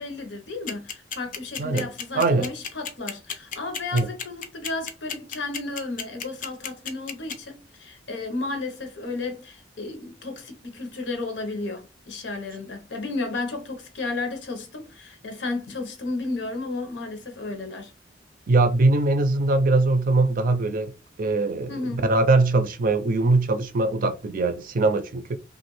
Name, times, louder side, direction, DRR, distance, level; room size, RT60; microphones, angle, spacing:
voice 1, 0.0-17.9 21.7-22.0, left 3 dB, 85° left, 0.9 m, -33 dB
sound 1, 0.7-7.3, left 7 dB, 50° left, 0.5 m, -31 dB
voice 2, 2.1-2.5 3.9-4.1 18.5-20.9 21.2-25.4, right 2 dB, 50° right, 0.4 m, -21 dB
2.9 x 2.4 x 3.1 m
head